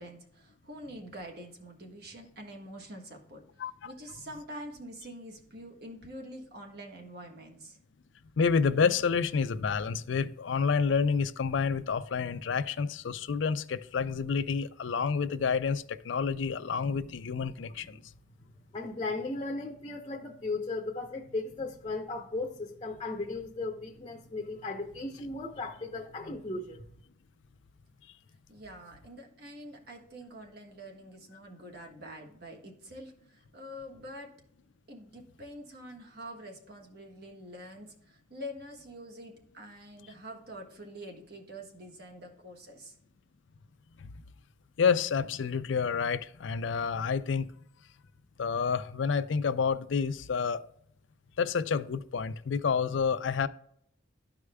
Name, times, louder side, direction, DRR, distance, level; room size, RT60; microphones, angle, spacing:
voice 1, 0.0-3.4 3.8-7.8 28.5-34.3 34.9-42.9, equal, 55° right, 1.4 m, -46 dB
voice 2, 3.6-3.9 8.4-18.0 26.3-26.4 44.8-47.5 48.4-50.6 51.4-53.5, left 5 dB, 75° left, 0.4 m, -29 dB
voice 3, 18.7-26.8, left 3 dB, 25° left, 0.7 m, -36 dB
13.0 x 4.8 x 2.2 m
head